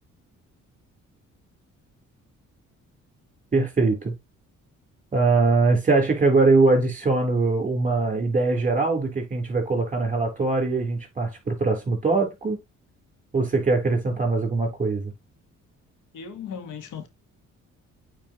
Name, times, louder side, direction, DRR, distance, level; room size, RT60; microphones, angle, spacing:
voice 1, 3.5-4.1 5.1-12.6 13.3-15.1, right 3 dB, 25° right, 3.5 m, -22 dB
voice 2, 16.1-17.1, left 7 dB, 85° left, 1.5 m, -36 dB
8.8 x 4.5 x 3.0 m
cardioid pair, 90°, 30 cm